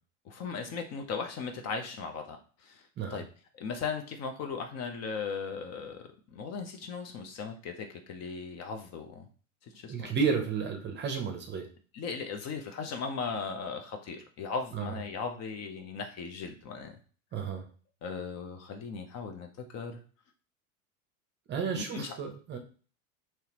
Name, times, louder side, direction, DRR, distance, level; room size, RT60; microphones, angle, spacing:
voice 1, 0.3-2.4 2.6-2.8 3.1-3.2 3.5-9.3 9.7-10.1 11.9-17.0 18.0-20.0 21.8-22.1, left 5 dB, 40° left, 5 dB, 0.6 m, -37 dB
voice 2, 9.9-11.7 14.7-14.9 17.3-17.6 21.5-22.6, right 5 dB, 25° right, 5 dB, 0.6 m, -32 dB
3.4 x 3.0 x 2.9 m, 0.40 s
supercardioid pair, 110°, 42 cm